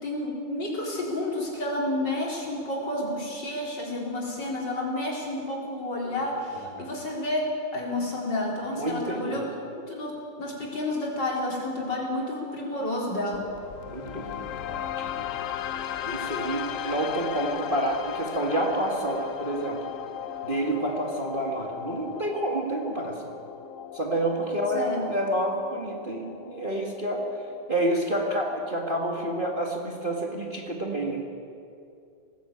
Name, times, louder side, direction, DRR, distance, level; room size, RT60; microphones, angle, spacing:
voice 1, 0.0-9.5 9.9-13.5 24.7-25.1, left 1 dB, 55° left, -3 dB, 4.6 m, -30 dB
voice 2, 8.7-9.4 13.9-15.3 16.0-19.8 20.4-23.2 23.9-27.3 27.7-31.2, right 1 dB, 25° right, 0 dB, 1.8 m, -29 dB
sound 1, 13.3-29.3, left 10 dB, 85° left, 0.7 m, -37 dB
20.0 x 15.5 x 8.5 m, 2.6 s
omnidirectional pair, 2.3 m